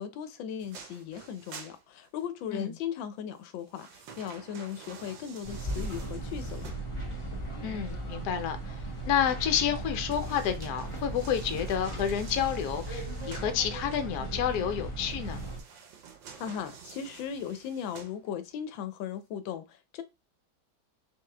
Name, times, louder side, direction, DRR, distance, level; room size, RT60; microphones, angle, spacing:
voice 1, 0.0-6.7 16.4-20.0, left 8 dB, 80° left, 1.3 m, -37 dB
sound 1, 0.6-2.5 3.3-7.3 9.8-13.6 15.1-18.6 19.1-19.2, right 6 dB, 75° right, 1.5 m, -49 dB
sound 2, 5.4-15.6, right 2 dB, 25° left, 0.7 m, -37 dB
voice 2, 7.6-8.7 9.0-15.4, left 9 dB, 65° left, 1.0 m, -30 dB
3.8 x 3.5 x 3.3 m
omnidirectional pair, 2.1 m